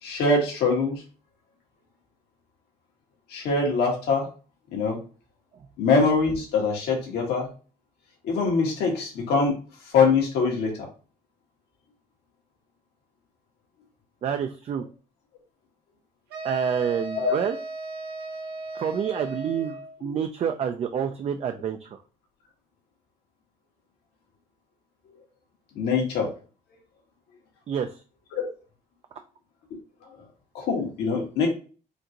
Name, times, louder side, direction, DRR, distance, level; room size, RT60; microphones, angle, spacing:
voice 1, 0.0-1.0 3.3-4.3 4.7-5.0 5.8-7.5 8.2-9.6 9.9-10.7 17.1-17.4 25.8-26.3 28.3-28.4 30.5-31.5, left 4 dB, 80° left, 0 dB, 1.8 m, -23 dB
voice 2, 14.2-14.9 16.4-17.6 18.7-22.0 27.7-28.0, right 8 dB, 40° right, 7 dB, 0.4 m, -28 dB
sound 1, 16.3-20.0, right 2 dB, 70° right, 1.1 m, -36 dB
5.0 x 2.6 x 2.9 m, 0.36 s
cardioid pair, 110°, 17 cm